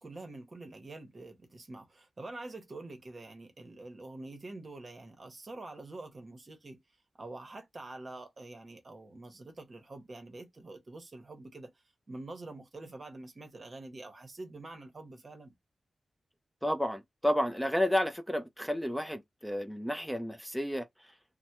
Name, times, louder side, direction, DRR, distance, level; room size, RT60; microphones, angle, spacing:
voice 1, 0.0-6.8 7.2-11.7 12.1-15.5, right 2 dB, 35° right, 0.8 m, -46 dB
voice 2, 16.6-20.9, equal, ahead, 0.4 m, -31 dB
3.3 x 2.1 x 2.9 m
wide cardioid pair, 170°, 0 cm